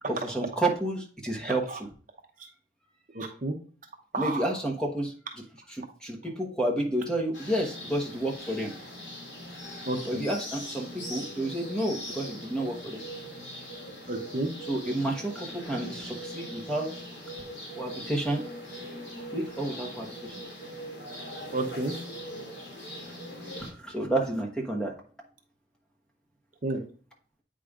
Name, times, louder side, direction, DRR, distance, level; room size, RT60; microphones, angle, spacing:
voice 1, 0.1-1.6 4.1-5.1 5.7-8.7 10.0-13.0 14.7-16.9 17.8-18.4 19.3-20.3 23.8-24.9, right 1 dB, 5° left, 0 dB, 1.1 m, -30 dB
voice 2, 1.4-1.8 3.1-3.5 4.1-4.5 9.9-10.2 14.1-14.5 21.5-21.9 26.6-26.8, right 2 dB, 45° right, 3 dB, 0.8 m, -31 dB
sound 1, 7.3-23.7, equal, 65° left, 2.5 m, -41 dB
8.3 x 5.0 x 2.4 m, 0.42 s
head